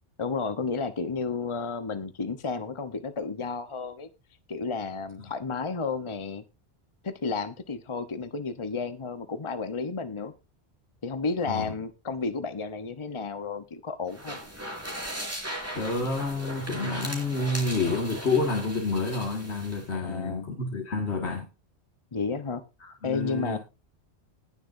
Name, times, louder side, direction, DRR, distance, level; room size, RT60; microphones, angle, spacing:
voice 1, 0.2-4.1 4.5-6.4 7.0-10.3 11.0-14.4 19.9-20.5 22.1-22.6 23.0-23.6, left 4 dB, 30° left, 0.9 m, -32 dB
sound 1, 14.1-19.9, equal, 15° right, 4.4 m, -38 dB
voice 2, 15.7-21.5 22.8-23.6, left 3 dB, 85° left, 2.3 m, -29 dB
19.5 x 7.2 x 2.6 m
omnidirectional pair, 1.1 m